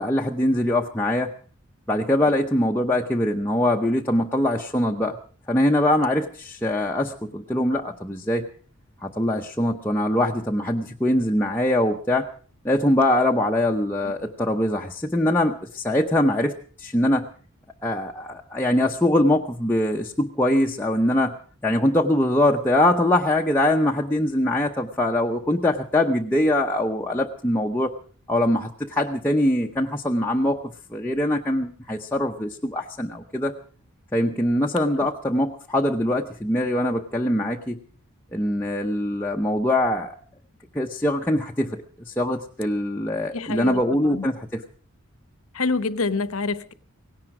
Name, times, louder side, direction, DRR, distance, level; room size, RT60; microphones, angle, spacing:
voice 1, 0.0-1.3 1.9-5.2 5.5-8.5 9.0-12.3 12.6-17.3 17.8-21.4 21.6-27.9 28.3-33.5 34.1-37.8 38.3-40.1 40.7-44.6, left 1 dB, 10° left, -1 dB, 0.7 m, -23 dB
voice 2, 43.3-44.2 45.5-46.7, left 3 dB, 80° left, 14 dB, 1.0 m, -27 dB
18.0 x 17.0 x 4.8 m, 0.43 s
head